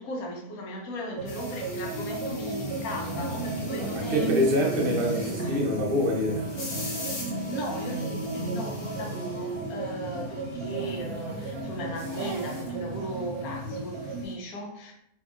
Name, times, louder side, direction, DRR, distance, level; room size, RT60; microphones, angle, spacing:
voice 1, 0.0-4.3 5.4-5.6 7.3-14.9, equal, 75° left, 0 dB, 1.1 m, -37 dB
sound 1, 1.2-14.3, right 2 dB, 75° right, 1.0 m, -33 dB
sound 2, 1.3-14.3, left 2 dB, 50° left, 0.8 m, -44 dB
sound 3, 2.1-13.0, right 1 dB, 5° left, 1.0 m, -48 dB
voice 2, 3.7-6.7, left 1 dB, 60° right, -1 dB, 0.6 m, -26 dB
2.8 x 2.7 x 2.4 m, 0.75 s
omnidirectional pair, 1.6 m